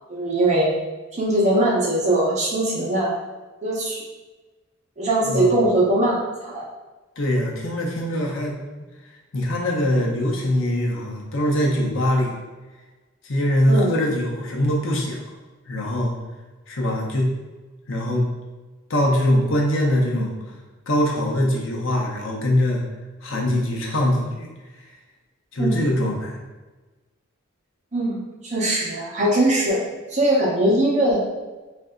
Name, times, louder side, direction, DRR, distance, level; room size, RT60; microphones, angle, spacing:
voice 1, 0.1-0.7 1.1-3.1 3.6-4.0 5.0-6.7 13.7-13.9 25.6-25.7 27.9-29.8 30.1-31.2, right 1 dB, 35° right, -4 dB, 0.9 m, -21 dB
voice 2, 5.3-5.6 7.2-8.5 9.3-12.3 13.2-15.2 15.7-16.1 16.7-17.3 17.9-18.3 18.9-20.4 20.9-22.8 23.2-24.5 25.5-26.4, left 1 dB, 65° left, -1 dB, 0.8 m, -22 dB
3.3 x 2.6 x 3.7 m, 1.2 s
head